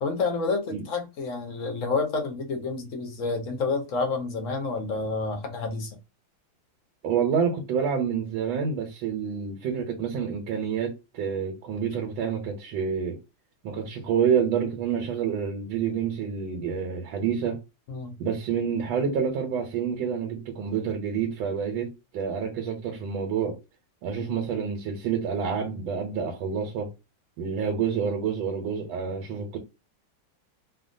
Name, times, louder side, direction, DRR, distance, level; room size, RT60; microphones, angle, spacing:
voice 1, 0.0-6.0 17.9-18.2 24.2-24.3, left 4 dB, 60° left, 0.8 m, -29 dB
voice 2, 7.0-13.2 13.6-17.6 18.2-23.6 24.0-26.9 27.4-29.6, right 7 dB, 85° right, 1.5 m, -28 dB
3.5 x 2.1 x 2.5 m
omnidirectional pair, 2.1 m